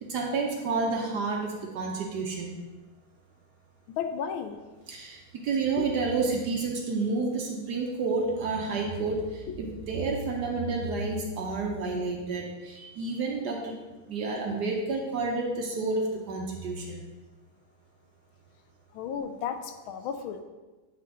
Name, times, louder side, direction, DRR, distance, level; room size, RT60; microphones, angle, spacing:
voice 1, 0.0-2.5 4.9-13.7 14.1-17.0, right 3 dB, 65° right, 1 dB, 1.2 m, -30 dB
voice 2, 4.0-4.6 5.8-5.9 9.5-9.6 18.9-20.4, left 7 dB, 80° left, 7 dB, 1.4 m, -33 dB
8.4 x 4.9 x 3.6 m, 1.2 s
omnidirectional pair, 2.3 m